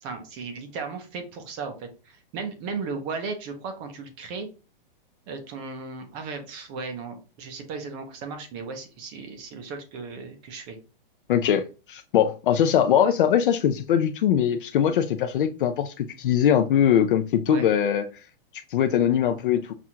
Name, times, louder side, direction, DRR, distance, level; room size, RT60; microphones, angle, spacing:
voice 1, 0.0-4.5 5.3-10.8 17.5-17.7, right 4 dB, 20° right, 0.5 m, -36 dB
voice 2, 11.3-18.1 18.7-19.7, left 9 dB, 65° left, 0.5 m, -21 dB
5.8 x 2.4 x 2.8 m
hypercardioid pair, 160°, 29 cm